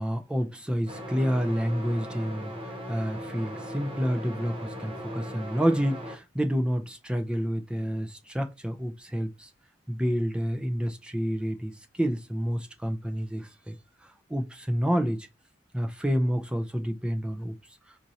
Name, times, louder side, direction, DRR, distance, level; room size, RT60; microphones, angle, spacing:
voice 1, 0.0-9.5 9.9-13.8 14.3-15.3 15.7-17.6, equal, 5° right, 0.5 m, -29 dB
sound 1, 0.9-6.1, equal, 30° right, 1.1 m, -38 dB
4.3 x 2.5 x 2.7 m
head